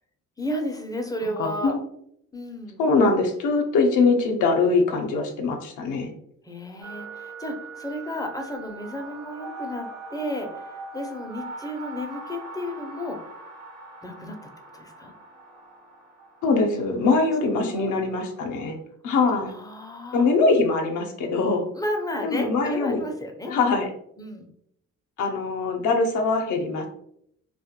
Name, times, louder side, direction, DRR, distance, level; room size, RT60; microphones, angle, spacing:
voice 1, 0.4-1.8 2.3-2.8 6.4-13.3 14.0-14.4 14.7-15.1 17.4-18.0 19.4-20.3 21.7-23.5 24.2-24.5, left 1 dB, 15° left, 3 dB, 0.4 m, -33 dB
voice 2, 1.4-1.8 2.8-6.1 16.4-18.8 19.0-19.5 20.1-21.6 22.2-23.0 23.5-23.9 25.2-26.9, left 3 dB, 80° left, 3 dB, 0.5 m, -22 dB
sound 1, 6.8-18.5, right 3 dB, 65° right, 0.7 m, -41 dB
2.2 x 2.1 x 2.8 m, 0.71 s
cardioid pair, 90°, 30 cm